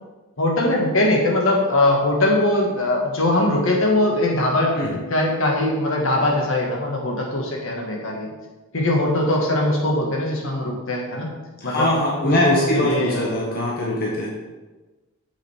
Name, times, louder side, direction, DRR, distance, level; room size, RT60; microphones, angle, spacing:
voice 1, 0.4-4.8 5.1-8.3 8.7-11.3 11.6-11.9 12.2-13.3, left 1 dB, 65° left, -1 dB, 1.8 m, -21 dB
voice 2, 11.6-14.3, left 1 dB, 45° left, -4 dB, 1.2 m, -22 dB
8.7 x 7.4 x 3.6 m, 1.2 s
head